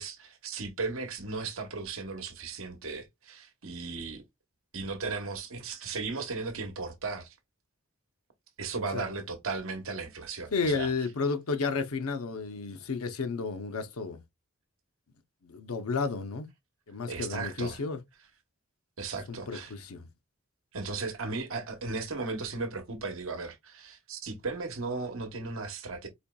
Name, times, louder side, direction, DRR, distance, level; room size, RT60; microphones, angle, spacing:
voice 1, 0.0-4.2 4.7-7.4 8.6-10.9 17.1-17.8 19.0-19.7 20.7-26.1, right 4 dB, 75° right, 0.9 m, -36 dB
voice 2, 10.5-14.2 15.4-16.5 16.9-18.0 19.3-20.1, left 4 dB, 90° left, 0.6 m, -32 dB
4.2 x 2.9 x 2.2 m
head